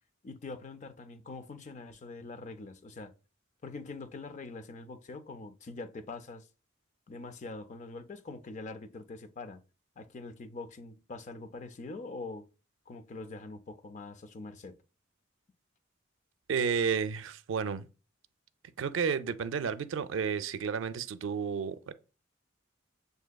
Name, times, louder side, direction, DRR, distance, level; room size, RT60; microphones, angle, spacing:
voice 1, 0.2-3.1 3.6-6.5 7.1-9.6 10.0-12.5 12.9-14.8, left 3 dB, 40° left, 0.4 m, -44 dB
voice 2, 16.5-17.9 18.8-21.9, right 6 dB, 90° right, 0.4 m, -31 dB
7.2 x 2.7 x 2.2 m
head